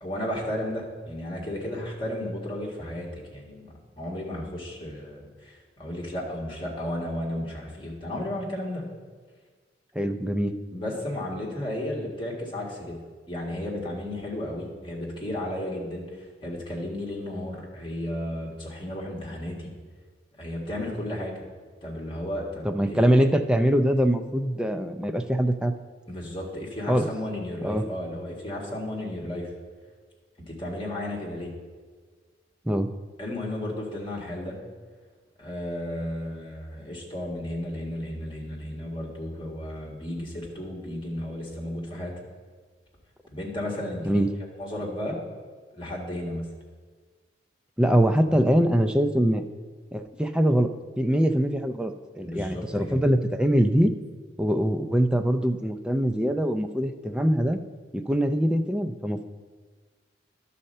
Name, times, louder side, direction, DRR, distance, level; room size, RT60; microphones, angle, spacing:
voice 1, 0.0-8.8 10.7-13.0 13.3-19.7 20.4-21.4 21.8-23.0 26.1-29.5 30.5-31.5 33.2-34.6 35.4-42.1 43.3-44.2 44.6-45.2 45.7-46.4 52.2-53.0, left 1 dB, 25° left, -2 dB, 1.7 m, -33 dB
voice 2, 10.0-10.5 22.6-25.7 26.9-27.1 27.6-27.8 32.7-32.9 44.1-44.3 47.8-49.4 49.9-50.7 51.0-53.9 54.4-57.6 57.9-59.2, equal, 5° right, 7 dB, 0.4 m, -23 dB
11.0 x 4.2 x 6.6 m, 1.5 s
head